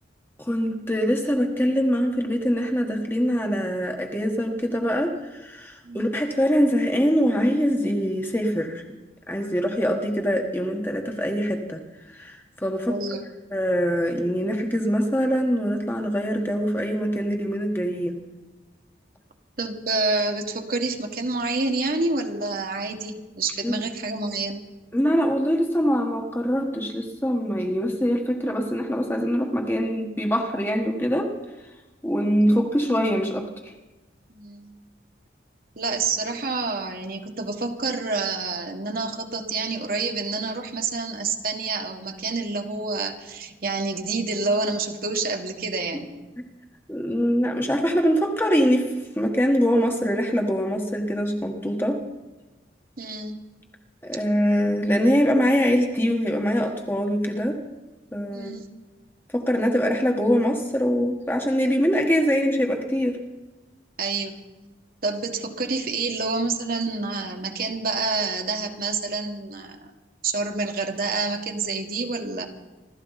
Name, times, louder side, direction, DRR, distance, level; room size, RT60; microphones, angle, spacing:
voice 1, 0.4-8.8 9.3-11.8 12.1-13.0 13.5-18.2 23.6-23.9 24.9-31.3 32.0-33.5 45.9-46.0 46.9-48.9 49.2-52.0 54.0-57.6 58.1-58.6 59.3-63.2, equal, 10° left, 2 dB, 1.3 m, -23 dB
voice 2, 5.8-6.3 12.9-13.2 17.9-18.0 19.6-24.6 34.3-34.7 35.8-46.1 53.0-53.4 58.3-58.7 64.0-64.4 65.0-69.9 70.2-72.5, right 3 dB, 50° right, 3 dB, 1.6 m, -28 dB
27.5 x 13.0 x 4.1 m, 1.1 s
head